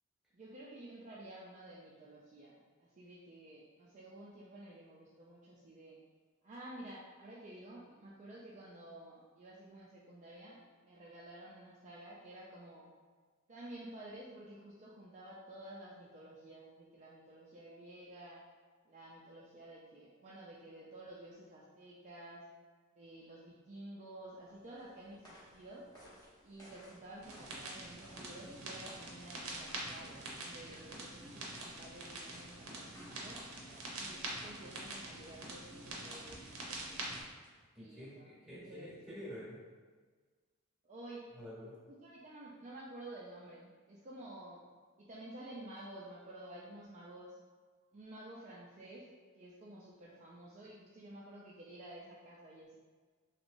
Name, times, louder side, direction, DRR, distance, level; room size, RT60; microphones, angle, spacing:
voice 1, 0.3-6.0 6.4-12.9 13.5-18.4 18.8-22.4 23.0-25.9 26.4-33.4 33.9-37.1 37.8-38.9 40.8-41.3 41.9-44.6 45.0-47.4 47.9-52.8, right 1 dB, 35° right, -5 dB, 0.4 m, -52 dB
sound 1, 24.4-37.7, equal, 20° left, 1.0 m, -61 dB
sound 2, 27.2-37.2, right 2 dB, 70° right, 0.7 m, -45 dB
voice 2, 37.7-39.6 41.3-41.8, equal, ahead, -9 dB, 1.1 m, -48 dB
3.2 x 3.0 x 2.6 m, 1.5 s
head